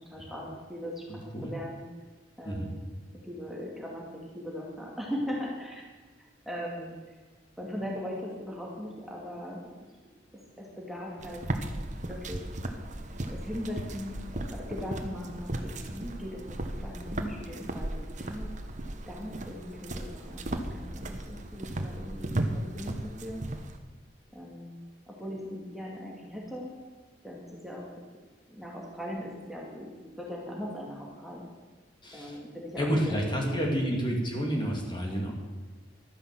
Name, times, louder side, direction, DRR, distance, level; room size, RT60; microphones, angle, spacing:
voice 1, 0.0-1.8 2.4-2.8 3.1-5.8 6.5-7.1 7.6-9.7 10.6-11.4 12.0-12.4 13.3-18.5 19.1-23.4 24.3-24.7 25.1-26.7 27.2-27.8 28.5-31.5 32.1-34.0, equal, ahead, -3 dB, 2.2 m, -39 dB
voice 2, 1.1-1.5 2.4-2.7 32.0-32.4 32.8-35.3, equal, 25° left, 0 dB, 2.5 m, -30 dB
sound 1, 11.2-23.8, right 1 dB, 40° right, 1.2 m, -36 dB
12.5 x 9.9 x 7.5 m, 1.3 s
head